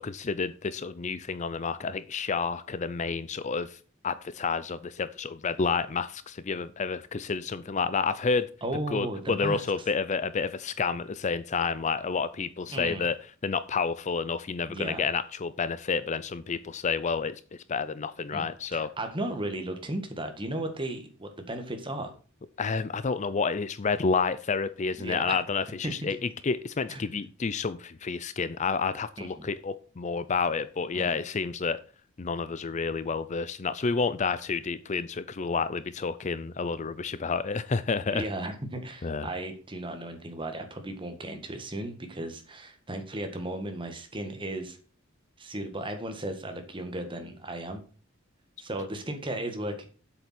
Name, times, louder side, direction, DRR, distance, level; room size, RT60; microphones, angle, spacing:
voice 1, 0.0-3.8 4.0-8.5 8.9-13.2 13.4-17.4 17.7-18.9 22.6-26.2 26.4-31.8 32.2-38.2 39.0-39.3, left 5 dB, 35° left, 14 dB, 0.5 m, -30 dB
voice 2, 8.6-9.6 12.7-13.1 14.7-15.0 18.3-18.5 18.7-22.1 25.0-25.4 25.8-26.1 26.9-27.1 29.2-29.5 30.9-31.2 38.1-44.8 45.4-47.8 48.6-49.9, right 1 dB, 25° right, 6 dB, 1.7 m, -35 dB
8.0 x 7.0 x 5.9 m, 0.39 s
head